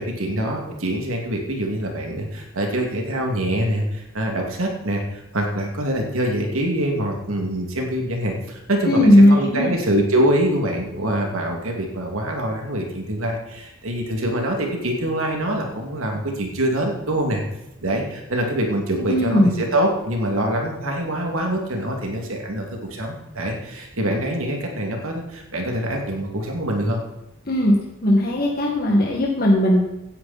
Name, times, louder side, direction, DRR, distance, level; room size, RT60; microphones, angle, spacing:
voice 1, 0.0-17.4 17.8-27.0, right 1 dB, 75° right, 1 dB, 2.6 m, -24 dB
voice 2, 8.9-9.7 19.1-19.6 27.5-27.8 28.0-29.8, left 1 dB, 45° left, -2 dB, 1.9 m, -17 dB
17.0 x 10.0 x 4.3 m, 0.93 s
head